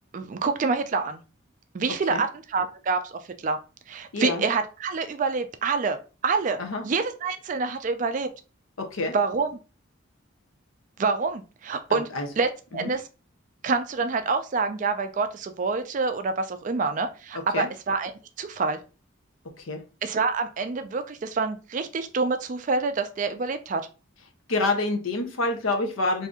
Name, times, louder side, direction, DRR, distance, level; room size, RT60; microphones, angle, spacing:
voice 1, 0.1-1.2 1.7-3.6 3.9-6.0 6.2-8.3 9.1-9.5 11.0-12.1 12.4-13.0 13.6-18.1 18.4-18.8 20.0-23.8, right 4 dB, 40° right, 8 dB, 0.3 m, -27 dB
voice 2, 4.1-4.4 6.6-6.8 8.8-9.1 11.9-12.3 12.7-12.9 17.5-17.7 19.6-19.8 24.5-26.3, left 2 dB, 80° left, 5 dB, 0.7 m, -27 dB
2.7 x 2.5 x 3.5 m, 0.33 s
head